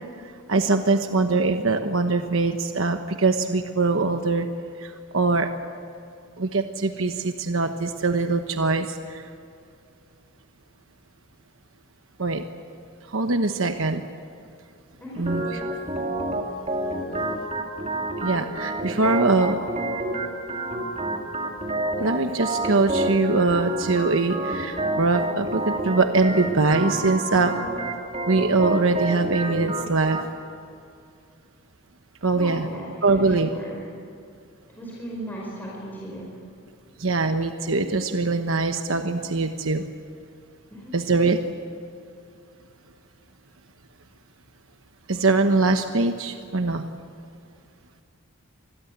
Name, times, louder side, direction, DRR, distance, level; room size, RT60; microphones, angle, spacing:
voice 1, 0.5-4.5 4.8-5.5 6.4-9.2 12.2-12.4 13.1-14.0 15.2-15.6 18.2-19.6 22.0-27.5 28.3-30.2 32.2-32.7 33.0-33.5 37.0-39.9 40.9-41.4 45.1-46.9, right 3 dB, 70° right, 6 dB, 1.2 m, -22 dB
voice 2, 15.0-15.3 32.3-33.8 34.7-36.4 40.7-41.0, right 1 dB, 10° left, -4 dB, 5.2 m, -37 dB
Organ, 15.3-30.3, right 1 dB, 30° right, 2.6 m, -29 dB
27.0 x 21.0 x 8.2 m, 2.4 s
head